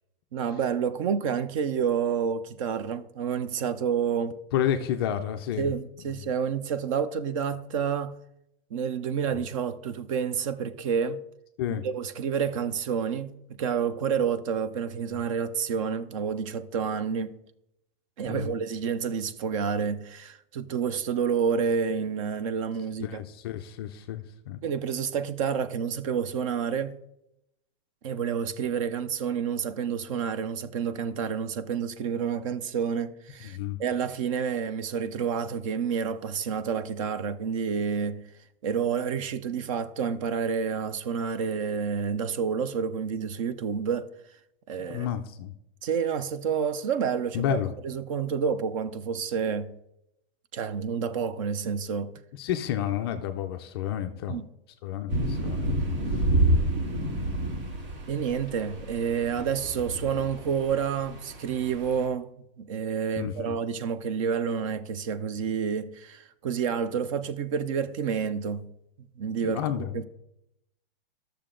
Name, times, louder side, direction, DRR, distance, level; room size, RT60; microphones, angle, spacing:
voice 1, 0.3-4.4 5.6-8.2 8.7-11.2 11.8-17.4 18.2-23.2 24.6-27.0 28.0-38.2 38.6-44.1 44.7-45.1 45.8-47.6 47.8-49.8 50.5-52.1 54.3-54.4 58.1-62.3 62.6-68.7 69.2-70.0, right 7 dB, 35° right, 0.4 m, -29 dB
voice 2, 4.5-5.7 6.0-6.2 9.3-9.4 11.6-11.8 18.3-18.6 23.0-24.6 33.5-33.8 44.9-45.5 47.3-47.7 52.3-54.4 54.8-55.7 56.1-56.2 57.1-57.2 63.2-63.6 69.4-70.0, left 10 dB, 25° left, 0.4 m, -31 dB
sound 1, 55.1-62.0, right 1 dB, 65° right, 3.0 m, -29 dB
12.0 x 6.7 x 3.7 m
supercardioid pair, 165°, 29 cm